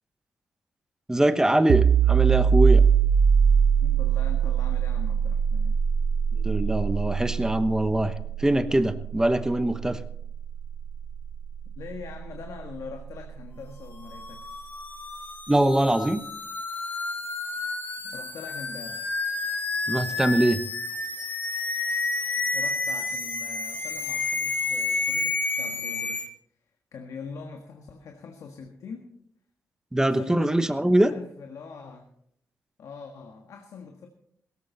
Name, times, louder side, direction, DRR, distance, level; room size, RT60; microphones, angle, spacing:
voice 1, 1.1-2.8 6.4-8.1 8.4-10.0 15.5-16.2 19.9-20.6 29.9-31.1, right 1 dB, 10° right, 12 dB, 1.0 m, -23 dB
sound 1, 1.7-13.1, right 7 dB, 75° right, 0.6 m, -23 dB
voice 2, 3.8-5.8 11.8-14.7 18.0-19.2 22.5-26.3 26.9-29.1 30.0-32.1 32.8-34.1, left 5 dB, 80° left, 3 dB, 1.6 m, -43 dB
sound 2, 14.0-26.3, left 3 dB, 35° left, 1.9 m, -30 dB
17.0 x 14.5 x 4.0 m, 0.68 s
cardioid pair, 90°, 5 cm